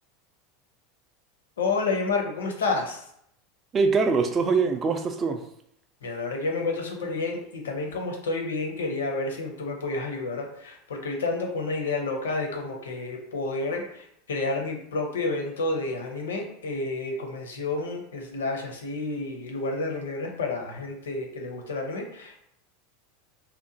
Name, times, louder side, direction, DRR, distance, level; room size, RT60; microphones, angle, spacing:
voice 1, 1.6-3.0 6.0-22.4, left 3 dB, 80° left, 2 dB, 0.5 m, -30 dB
voice 2, 3.7-5.4, right 4 dB, 30° right, 5 dB, 0.3 m, -23 dB
2.8 x 2.1 x 2.6 m, 0.72 s
hypercardioid pair, 85°, 0 cm